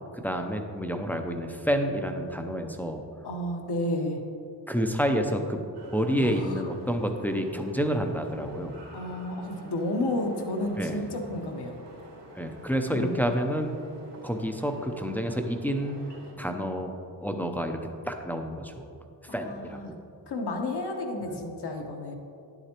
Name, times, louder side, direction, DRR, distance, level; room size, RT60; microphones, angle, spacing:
voice 1, 0.1-3.0 4.7-5.6 5.9-8.8 10.8-11.1 12.3-13.8 14.2-16.0 16.4-17.0 17.2-17.8 18.0-18.9 19.3-20.0 21.3-21.4, equal, 5° left, 4 dB, 0.5 m, -29 dB
voice 2, 3.2-4.2 6.2-6.6 8.9-11.8 12.9-13.2 19.3-19.9 20.3-22.1, left 1 dB, 70° left, 2 dB, 1.1 m, -32 dB
sound 1, 5.7-16.3, right 1 dB, 75° right, 2.1 m, -49 dB
9.6 x 8.1 x 2.9 m, 2.5 s
cardioid pair, 90°, 41 cm